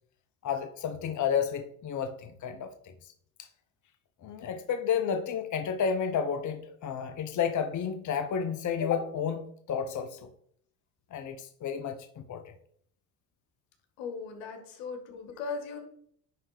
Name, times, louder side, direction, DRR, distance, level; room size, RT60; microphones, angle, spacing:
voice 1, 0.4-2.9 4.2-10.3 11.1-12.4, left 7 dB, 45° left, 7 dB, 0.9 m, -31 dB
voice 2, 14.0-15.9, left 5 dB, 80° left, 5 dB, 1.7 m, -38 dB
10.5 x 3.5 x 5.0 m, 0.65 s
supercardioid pair, 80°, 42 cm